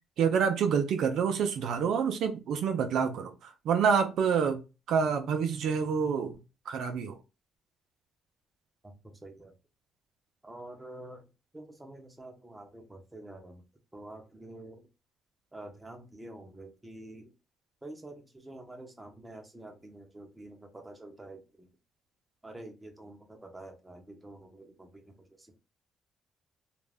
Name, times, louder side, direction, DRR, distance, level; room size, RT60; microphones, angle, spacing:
voice 1, 0.2-4.6 4.9-6.3 6.7-7.2, right 6 dB, 75° right, 0.6 m, -27 dB
voice 2, 8.8-9.5 10.4-11.3 11.5-13.6 13.9-14.9 15.5-17.3 17.8-21.7 22.4-25.6, right 1 dB, 15° right, 0.8 m, -47 dB
2.5 x 2.1 x 3.3 m
cardioid pair, 90°, 0 cm